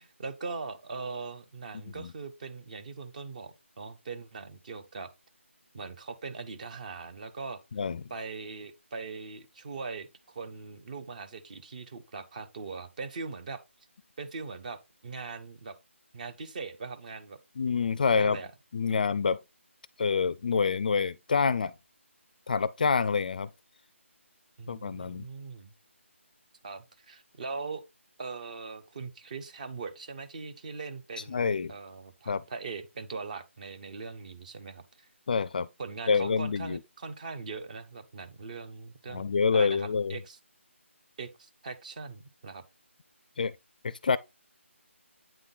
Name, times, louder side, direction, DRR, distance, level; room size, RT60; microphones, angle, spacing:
voice 1, 0.0-5.1 5.7-7.6 8.1-13.6 14.2-15.7 16.1-17.4 18.1-18.5 18.9-19.0 24.6-25.7 26.6-27.8 28.2-35.1 35.8-39.3 39.5-40.4 41.2-42.6, right 4 dB, 35° right, 1.0 m, -40 dB
voice 2, 17.6-18.4 18.7-19.4 20.0-21.7 22.5-23.5 24.7-25.3 31.3-31.7 32.3-32.4 35.3-35.7 36.1-36.8 39.1-40.2 43.4-43.6 43.8-44.2, left 5 dB, 40° left, 0.4 m, -27 dB
9.0 x 3.7 x 4.0 m
figure-of-eight pair, 165°, 7 cm